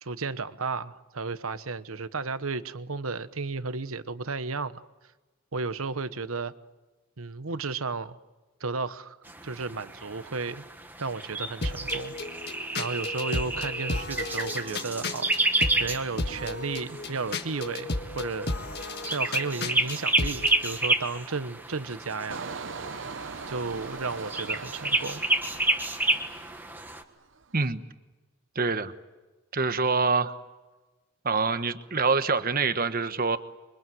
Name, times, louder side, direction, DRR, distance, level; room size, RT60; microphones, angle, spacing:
voice 1, 0.0-4.8 5.5-6.5 7.2-8.1 8.6-9.2 9.4-10.6 11.0-12.1 12.8-18.5 19.1-22.5 23.5-25.2, right 4 dB, 75° right, 1.1 m, -33 dB
sound 1, 9.3-27.0, right 2 dB, 10° right, 1.5 m, -31 dB
sound 2, 11.6-20.6, left 2 dB, 50° left, 1.7 m, -34 dB
Engine, 22.3-27.0 27.3-27.7, right 4 dB, 60° right, 0.8 m, -41 dB
voice 2, 28.5-28.9 29.5-30.3 31.2-33.4, right 4 dB, 40° right, 1.2 m, -25 dB
27.0 x 24.0 x 7.8 m
head